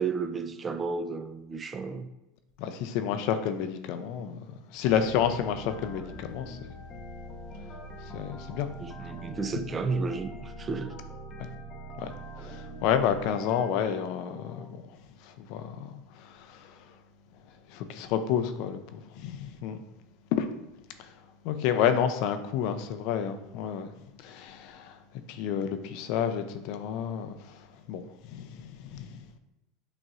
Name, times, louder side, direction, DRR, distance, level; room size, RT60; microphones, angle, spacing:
voice 1, 0.0-2.1 8.8-11.0, right 4 dB, 25° right, 10 dB, 0.4 m, -32 dB
voice 2, 2.6-4.4 4.7-6.6 8.1-8.7 11.4-11.5 12.0-12.1 12.5-14.8 15.5-16.0 17.7-19.8 20.3-20.5 21.4-23.9 24.2-24.9 25.3-27.3 27.9-28.0 28.3-29.1, left 8 dB, 60° left, 8 dB, 0.4 m, -29 dB
sound 1, 4.9-14.7, equal, 30° left, 0.7 m, -44 dB
6.1 x 2.9 x 2.5 m, 0.91 s
hypercardioid pair, 100°, 0 cm